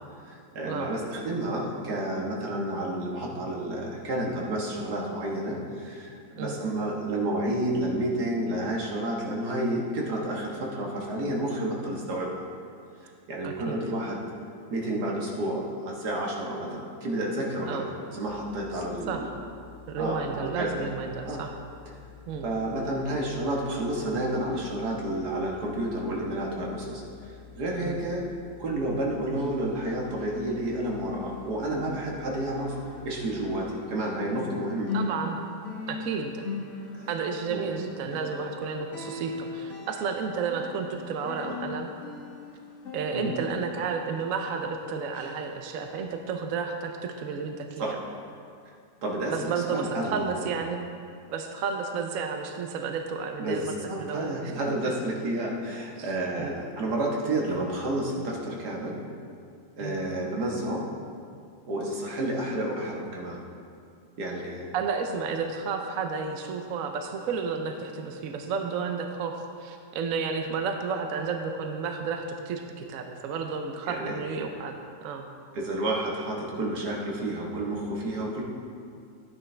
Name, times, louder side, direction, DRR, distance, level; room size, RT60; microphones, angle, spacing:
voice 1, 0.2-12.5 13.0-14.2 14.7-19.3 20.0-20.9 21.3-21.4 22.4-28.2 28.6-32.8 33.0-34.9 36.9-37.1 37.5-37.7 41.5-41.6 43.1-43.3 47.8-47.9 49.0-50.5 53.4-59.0 59.8-60.9 61.7-63.4 64.2-64.7 73.9-74.1 75.5-78.4, right 1 dB, 90° right, -2 dB, 2.0 m, -30 dB
voice 2, 13.4-13.8 17.7-17.9 19.1-19.3 19.9-21.5 22.3-22.5 27.8-28.0 34.9-35.4 35.9-36.5 37.1-41.9 42.9-48.0 49.3-50.8 51.3-54.5 56.0-56.1 56.4-56.6 59.8-60.0 64.7-74.8 75.0-75.3, right 5 dB, 65° right, 5 dB, 1.0 m, -32 dB
sound 1, 18.2-33.7, left 8 dB, 40° right, 1.4 m, -50 dB
sound 2, 29.2-31.4 31.6-44.8 45.1-45.4 45.9-46.0, left 4 dB, 55° left, 2.1 m, -40 dB
11.5 x 9.6 x 3.3 m, 2.3 s
omnidirectional pair, 1.7 m